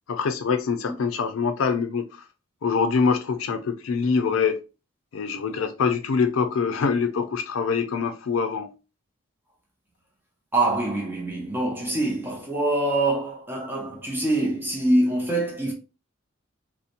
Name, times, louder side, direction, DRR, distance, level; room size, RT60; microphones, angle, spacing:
voice 1, 0.1-2.1 2.6-4.6 5.1-8.7, left 5 dB, 85° left, 0.4 m, -24 dB
voice 2, 10.5-15.7, right 2 dB, 10° right, 0.6 m, -24 dB
2.7 x 2.1 x 2.4 m
head